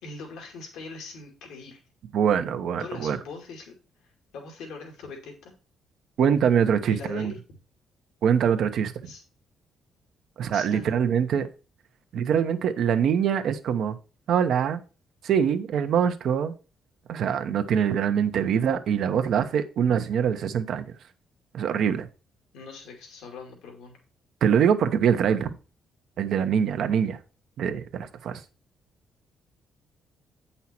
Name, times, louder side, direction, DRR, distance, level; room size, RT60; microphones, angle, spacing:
voice 1, 0.0-1.8 2.8-3.7 4.3-5.5 6.9-7.4 9.1-9.2 10.5-11.0 22.5-24.0, left 4 dB, 90° left, 2.3 m, -41 dB
voice 2, 2.1-3.2 6.2-7.3 8.2-9.1 10.4-11.5 12.1-14.0 14.3-14.8 15.2-16.5 17.1-20.8 21.5-22.1 24.4-25.6 26.2-27.2 27.6-28.4, right 8 dB, 70° right, 1.0 m, -24 dB
8.4 x 5.6 x 4.4 m
cardioid pair, 90°, 0 cm